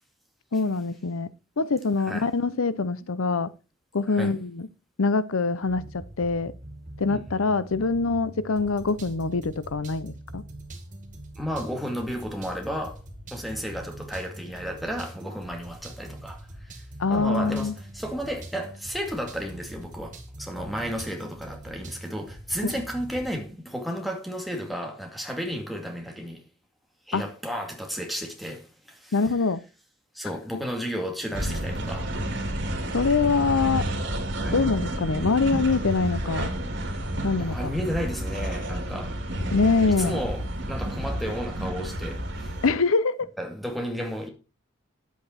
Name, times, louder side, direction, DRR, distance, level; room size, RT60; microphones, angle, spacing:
voice 1, 0.5-1.3 1.6-3.5 3.9-4.7 5.0-6.5 7.0-10.4 17.0-17.7 22.6-22.7 27.1-27.2 29.1-29.6 32.9-33.8 34.5-36.5 37.2-37.7 39.5-40.2 42.6-43.3, left 4 dB, 80° left, 0.7 m, -24 dB
sound 1, 5.6-23.3, right 1 dB, 40° right, 2.1 m, -43 dB
voice 2, 11.4-13.0 13.3-16.8 17.1-26.4 27.1-29.2 30.1-32.2 34.4-34.6 37.4-39.2 39.9-42.6 43.4-44.3, equal, ahead, 2.2 m, -33 dB
sound 2, 31.3-42.7, right 1 dB, 55° right, 2.6 m, -30 dB
10.5 x 8.3 x 4.3 m
head